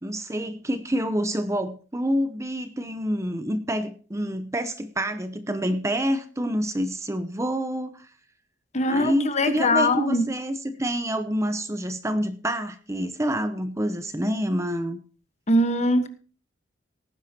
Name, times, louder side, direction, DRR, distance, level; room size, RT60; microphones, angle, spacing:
voice 1, 0.0-8.1 8.9-15.0, equal, 15° right, 10 dB, 0.8 m, -27 dB
voice 2, 8.7-10.2 15.5-16.1, left 1 dB, 40° left, 8 dB, 1.4 m, -21 dB
18.5 x 10.5 x 2.9 m, 0.37 s
head